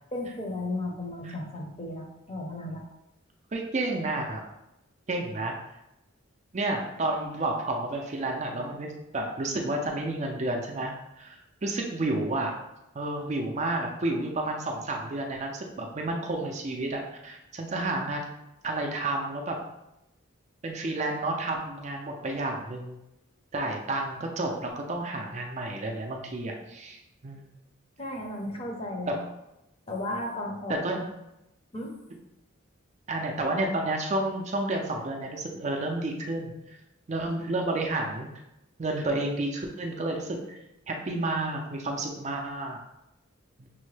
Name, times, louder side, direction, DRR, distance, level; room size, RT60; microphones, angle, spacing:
voice 1, 0.1-2.8 28.0-29.1 29.9-30.8 31.7-31.9, left 1 dB, 30° left, 1 dB, 0.6 m, -34 dB
voice 2, 3.5-4.4 5.1-5.5 6.5-11.4 11.6-12.5 12.9-18.2 18.6-19.6 20.6-23.0 23.5-27.5 29.1-29.3 30.8-31.1 33.1-36.8 37.1-38.3 38.8-40.6 40.9-42.8 43.6-43.7, right 2 dB, 35° right, 1 dB, 0.4 m, -31 dB
6.0 x 2.1 x 3.2 m, 0.90 s
head